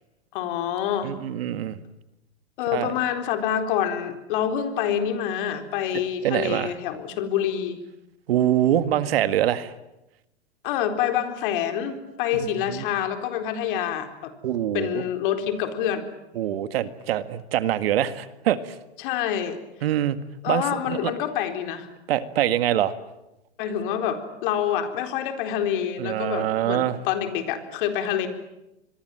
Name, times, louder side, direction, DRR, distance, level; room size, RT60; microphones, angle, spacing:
voice 1, 0.3-1.1 2.6-7.8 10.6-14.3 14.7-16.1 19.0-19.6 20.4-21.9 23.6-28.3, left 9 dB, 50° left, 7 dB, 4.1 m, -27 dB
voice 2, 1.0-1.8 2.7-2.9 6.2-6.8 8.3-9.7 12.7-12.8 14.4-15.0 16.4-18.6 19.8-20.2 20.5-21.1 22.1-22.9 26.0-27.0, right 11 dB, 65° right, 12 dB, 1.9 m, -24 dB
26.0 x 23.0 x 9.1 m, 0.92 s
hypercardioid pair, 130°, 33 cm